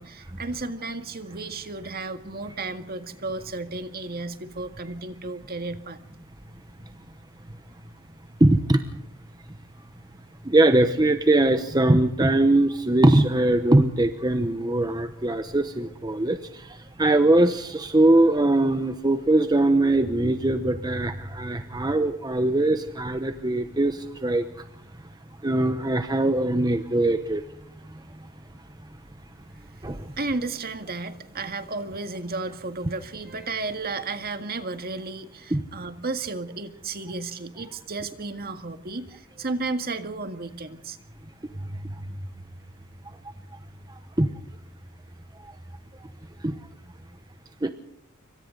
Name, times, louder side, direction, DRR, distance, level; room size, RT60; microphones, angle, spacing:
voice 1, 0.0-6.0 30.2-41.0, right 3 dB, 45° right, 8 dB, 1.9 m, -33 dB
voice 2, 8.4-8.8 10.5-16.4 17.0-24.4 25.4-27.4 29.8-30.0 35.5-35.6 44.2-44.3 46.4-46.5 47.6-47.7, right 1 dB, 20° right, 9 dB, 0.9 m, -21 dB
27.0 x 24.5 x 3.9 m, 0.75 s
head